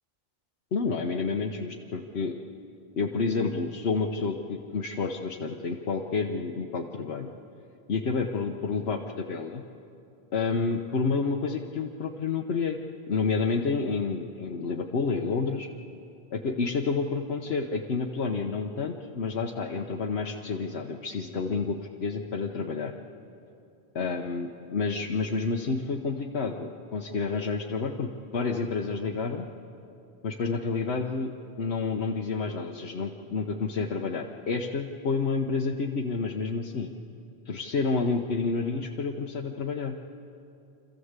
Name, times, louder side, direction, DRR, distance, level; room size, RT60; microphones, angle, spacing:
voice 1, 0.7-2.4 2.9-7.3 7.9-9.6 10.3-12.8 13.1-15.7 16.3-22.9 23.9-29.5 30.2-36.9 37.5-40.0, left 4 dB, 85° left, 1 dB, 1.2 m, -29 dB
26.5 x 14.5 x 8.1 m, 2.7 s
omnidirectional pair, 1.1 m